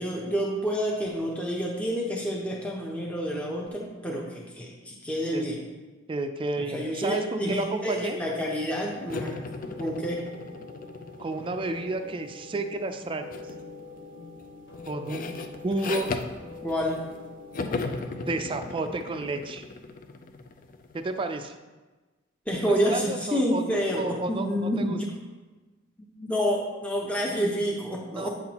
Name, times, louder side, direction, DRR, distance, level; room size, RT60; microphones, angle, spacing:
voice 1, 0.0-5.6 6.7-10.2 16.6-17.0 22.5-25.1 26.0-28.3, equal, 5° left, -3 dB, 0.7 m, -29 dB
voice 2, 6.1-8.2 11.2-13.5 14.9-15.3 15.6-16.1 18.2-19.7 20.9-21.6 22.6-25.0 28.2-28.3, right 2 dB, 25° right, 7 dB, 0.4 m, -31 dB
sound 1, 8.9-19.2, left 3 dB, 60° left, 1.8 m, -44 dB
sound 2, 9.1-12.4 13.3-13.6 14.0-17.2 17.5-21.1, left 3 dB, 45° left, 0.4 m, -37 dB
8.4 x 5.7 x 2.9 m, 1.2 s
head